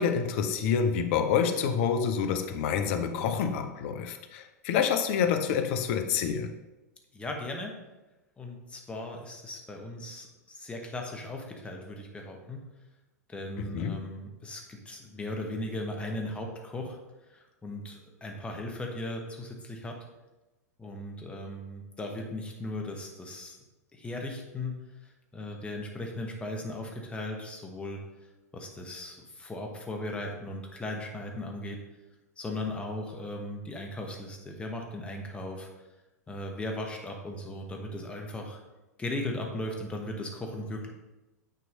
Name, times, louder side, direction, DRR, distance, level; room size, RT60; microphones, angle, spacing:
voice 1, 0.0-6.5 13.7-14.0, left 7 dB, 45° left, 7 dB, 0.6 m, -27 dB
voice 2, 7.1-7.8 8.4-12.6 13.3-17.0 17.3-20.0 20.8-23.6 23.9-24.7 25.0-28.0 28.5-31.8 32.4-35.7 36.3-38.6 39.0-40.9, left 1 dB, 10° left, 2 dB, 1.1 m, -37 dB
9.0 x 3.1 x 5.2 m, 1.1 s
figure-of-eight pair, 95°, 9 cm